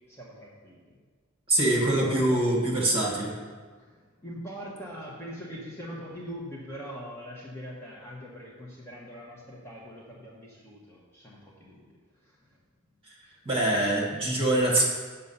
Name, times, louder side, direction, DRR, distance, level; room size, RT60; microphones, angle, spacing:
voice 1, 0.1-0.9 1.8-2.4 3.8-11.9 12.2-12.3 13.2-13.3, equal, 10° left, -5 dB, 1.0 m, -42 dB
voice 2, 1.5-3.3 13.4-14.8, right 1 dB, 25° right, -2 dB, 1.7 m, -24 dB
7.1 x 5.6 x 5.5 m, 1.5 s
head